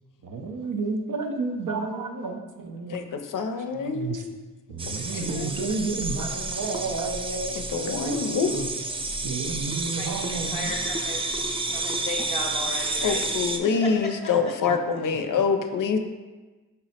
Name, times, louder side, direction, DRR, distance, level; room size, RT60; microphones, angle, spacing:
voice 1, 0.2-3.0 3.7-4.2 4.7-8.7 9.2-10.7, right 4 dB, 65° right, 4 dB, 0.6 m, -31 dB
voice 2, 2.9-4.4 5.1-5.6 7.5-8.6 13.0-16.0, left 5 dB, 65° left, 7 dB, 0.5 m, -26 dB
sound 1, 4.8-13.6, right 2 dB, 15° right, 0.3 m, -30 dB
voice 3, 10.0-11.3 11.7-13.3 13.6-13.9 14.7-14.8, left 2 dB, 15° left, -3 dB, 0.6 m, -35 dB
5.3 x 2.0 x 4.1 m, 1.3 s
cardioid pair, 45°, 34 cm